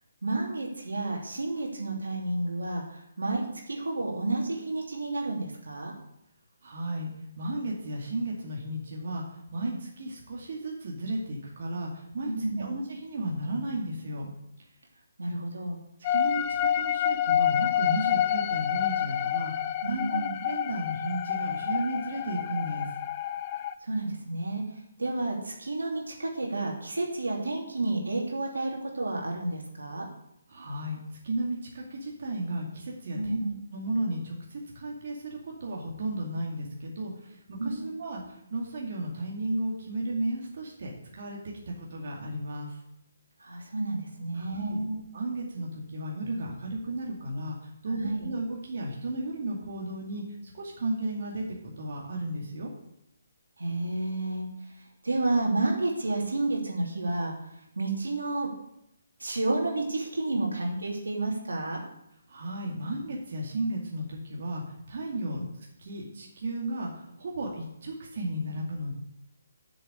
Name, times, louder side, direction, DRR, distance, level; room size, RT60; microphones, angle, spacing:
voice 1, 0.2-5.9 9.6-9.7 12.3-12.7 15.2-15.8 19.8-20.4 23.8-24.6 25.0-30.1 33.1-33.5 37.6-38.2 43.4-45.0 47.9-48.3 53.6-54.5 55.0-57.3 57.8-58.5 59.2-61.8 65.3-65.4, right 2 dB, 85° right, 0 dB, 2.9 m, -30 dB
voice 2, 6.6-7.1 7.4-9.2 9.5-12.3 12.6-14.3 16.1-22.9 30.5-31.0 31.2-33.4 33.7-37.4 37.6-42.8 44.3-44.8 45.1-50.2 50.5-51.5 51.8-52.7 62.3-64.6 64.9-65.4 65.8-68.9, right 1 dB, 55° right, -2 dB, 2.3 m, -34 dB
sound 1, 16.0-23.7, left 10 dB, 30° left, 0.6 m, -28 dB
7.4 x 7.2 x 7.9 m, 0.79 s
figure-of-eight pair, 145°, 0 cm